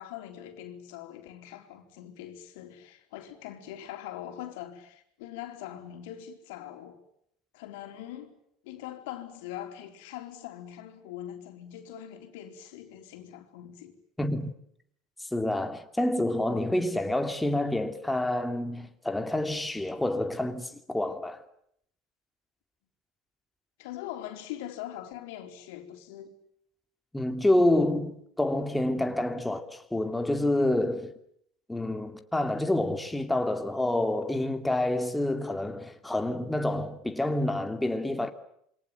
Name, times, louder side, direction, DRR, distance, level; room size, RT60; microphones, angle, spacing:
voice 1, 0.0-7.0 7.5-8.4 8.6-14.0 23.8-26.3 29.3-29.5, left 11 dB, 65° left, 4.0 m, -42 dB
voice 2, 14.2-14.5 15.2-21.4 27.1-31.1 31.7-38.3, left 1 dB, 5° left, 2.5 m, -28 dB
28.0 x 24.5 x 7.9 m
figure-of-eight pair, 70°, 0 cm